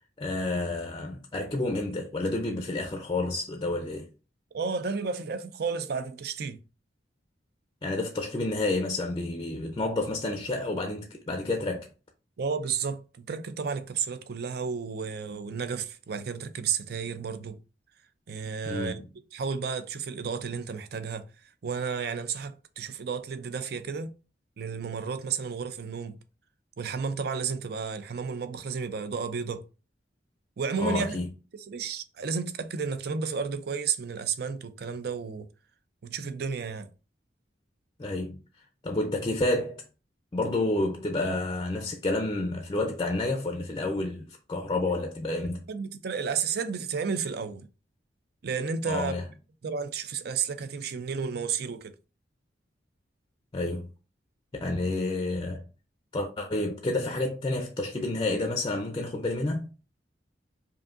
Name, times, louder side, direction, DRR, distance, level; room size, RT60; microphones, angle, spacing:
voice 1, 0.2-4.1 7.8-11.9 18.6-19.1 30.8-31.3 38.0-38.4 38.8-39.8 40.3-45.7 48.9-49.2 53.5-53.9 54.5-55.6 56.1-59.7, left 2 dB, 25° left, 0.5 m, -29 dB
voice 2, 4.5-6.6 12.4-17.6 18.3-19.0 19.3-21.3 21.6-24.1 24.6-26.2 26.8-29.6 30.6-31.2 31.5-35.5 36.0-36.9 45.7-47.7 48.4-49.2 49.6-51.9, right 5 dB, 60° right, 0.5 m, -32 dB
5.0 x 2.6 x 2.5 m
head